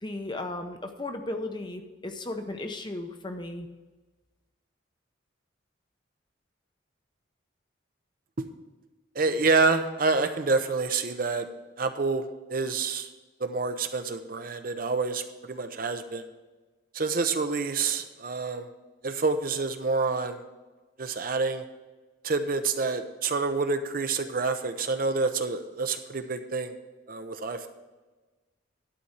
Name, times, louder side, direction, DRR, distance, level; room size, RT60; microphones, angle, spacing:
voice 1, 0.0-3.7, left 2 dB, 25° left, 6 dB, 0.7 m, -35 dB
voice 2, 9.1-11.5 11.8-12.2 12.5-13.1 13.4-16.3 16.9-18.7 19.0-20.4 21.0-21.6 22.2-26.7 27.1-27.7, right 4 dB, 45° right, 8 dB, 0.6 m, -27 dB
11.5 x 4.2 x 8.0 m, 1.2 s
head